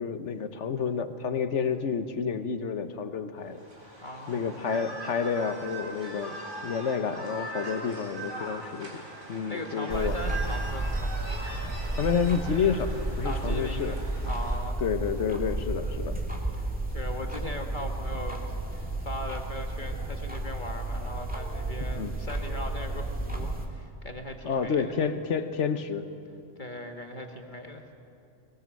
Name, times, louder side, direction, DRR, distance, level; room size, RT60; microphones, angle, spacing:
voice 1, 0.0-3.6 4.3-6.4 6.6-8.9 9.3-10.1 11.9-13.9 14.8-16.1 21.9-22.1 24.4-26.0, left 6 dB, 65° left, 10 dB, 1.4 m, -29 dB
sound 1, 3.5-14.6, right 2 dB, 40° right, 3.7 m, -41 dB
voice 2, 4.0-4.5 9.5-11.2 13.2-14.8 16.5-16.7 16.9-25.0 26.6-27.9, left 1 dB, 40° left, 4 dB, 1.6 m, -39 dB
sound 2, 9.9-23.7, right 2 dB, 5° right, 2.4 m, -32 dB
21.0 x 19.0 x 7.7 m, 2.6 s
omnidirectional pair, 1.4 m